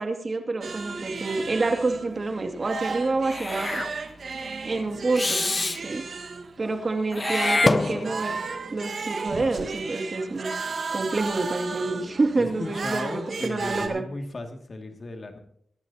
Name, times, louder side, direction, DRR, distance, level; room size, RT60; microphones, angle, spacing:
voice 1, 0.0-3.8 4.6-5.5 5.8-6.0 6.6-8.4 8.7-10.5 10.9-14.0, right 3 dB, 40° right, 4 dB, 2.3 m, -27 dB
sound 1, 0.6-13.9, right 4 dB, 65° right, 1.6 m, -34 dB
Meow / Hiss, 3.3-3.9 5.2-5.8 7.1-8.4, left 2 dB, 30° left, 0.5 m, -25 dB
voice 2, 12.4-15.4, left 2 dB, 45° left, 4 dB, 2.2 m, -36 dB
23.5 x 11.0 x 2.9 m, 0.67 s
cardioid pair, 85°, 0 cm